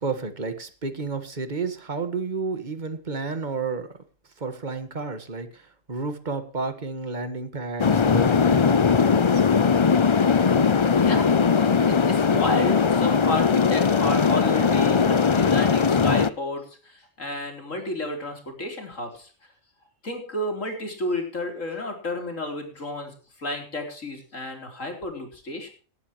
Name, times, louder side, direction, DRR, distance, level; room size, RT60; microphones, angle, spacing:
voice 1, 0.0-3.9 4.4-9.4, right 4 dB, 35° right, 9 dB, 1.8 m, -31 dB
sound 1, 7.8-16.3, left 5 dB, 40° left, 0.4 m, -20 dB
voice 2, 11.0-19.5 20.0-25.7, left 1 dB, 75° left, 3 dB, 4.3 m, -32 dB
18.0 x 12.5 x 3.1 m, 0.39 s
omnidirectional pair, 1.3 m